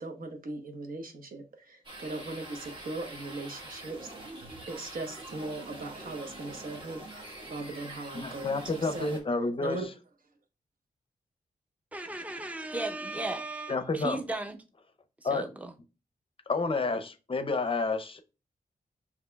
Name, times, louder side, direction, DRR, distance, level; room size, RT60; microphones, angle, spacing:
voice 1, 0.0-4.1 4.7-7.0 7.5-8.6 8.9-9.1 9.6-9.9, right 2 dB, 70° right, 0.9 m, -38 dB
sound 1, 1.8-9.2, right 1 dB, 35° right, 1.3 m, -45 dB
voice 2, 8.1-9.9 13.7-14.2 15.2-15.5 16.5-18.2, left 3 dB, 40° left, 0.5 m, -30 dB
voice 3, 11.9-14.6 15.3-15.7, right 2 dB, 10° right, 0.5 m, -35 dB
6.5 x 2.8 x 2.2 m
wide cardioid pair, 80°, 15 cm